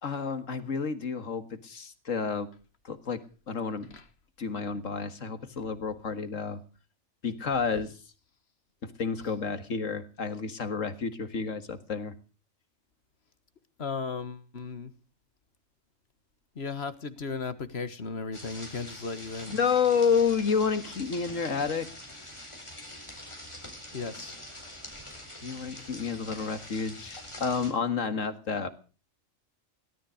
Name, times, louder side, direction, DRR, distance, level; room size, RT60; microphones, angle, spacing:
voice 1, 0.0-2.5 2.8-3.2 3.5-4.0 4.4-6.6 7.2-7.9 8.8-12.1 19.5-21.9 25.4-28.7, left 5 dB, 75° left, 11 dB, 2.0 m, -30 dB
voice 2, 13.8-14.9 16.5-19.6 23.9-24.4, left 4 dB, 55° left, 13 dB, 1.7 m, -36 dB
sound 1, 18.3-27.7, left 1 dB, 20° left, 4.4 m, -45 dB
17.5 x 12.5 x 6.4 m, 0.37 s
omnidirectional pair, 1.3 m